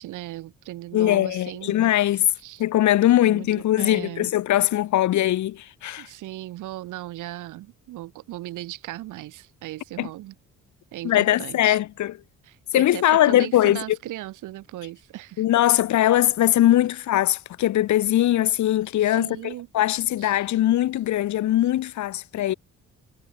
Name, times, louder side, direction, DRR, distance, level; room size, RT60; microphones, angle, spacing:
voice 1, 0.0-1.8 2.4-2.6 3.2-3.5 3.8-4.3 6.0-10.3 10.9-11.8 12.4-15.4 19.0-19.7 20.2-20.4, right 16 dB, 85° right, 1.6 m, -37 dB
voice 2, 0.9-2.3 2.6-6.1 10.0-10.1 11.0-12.1 12.7-13.8 15.4-22.5, left 13 dB, 70° left, 1.1 m, -21 dB
cardioid pair, 90°, 30 cm